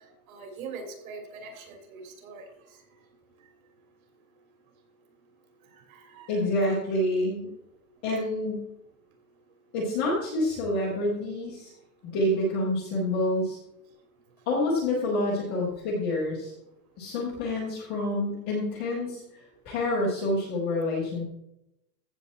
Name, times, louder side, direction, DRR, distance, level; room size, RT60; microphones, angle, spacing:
voice 1, 0.3-2.4 5.9-6.4, right 4 dB, 60° right, 3 dB, 3.3 m, -42 dB
voice 2, 6.3-7.5 8.0-8.6 9.7-11.7 12.1-13.6 14.5-16.5 17.0-21.2, left 1 dB, 5° left, -8 dB, 0.4 m, -28 dB
15.0 x 6.9 x 4.1 m, 0.85 s
supercardioid pair, 180°, 47 cm